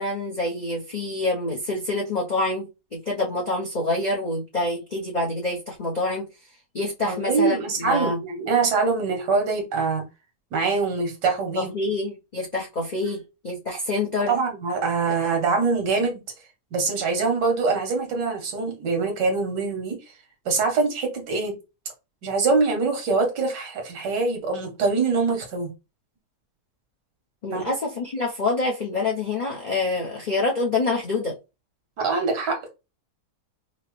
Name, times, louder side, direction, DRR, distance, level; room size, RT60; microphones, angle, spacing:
voice 1, 0.0-6.3 6.7-8.2 11.6-14.3 15.1-15.3 27.4-31.4, left 2 dB, 45° left, 0.6 m, -26 dB
voice 2, 7.1-10.0 10.5-11.7 14.3-16.2 16.7-20.0 20.5-21.6 22.2-25.7 27.5-27.7 32.0-32.7, right 4 dB, 90° right, 1.8 m, -24 dB
5.4 x 2.1 x 3.1 m
omnidirectional pair, 1.8 m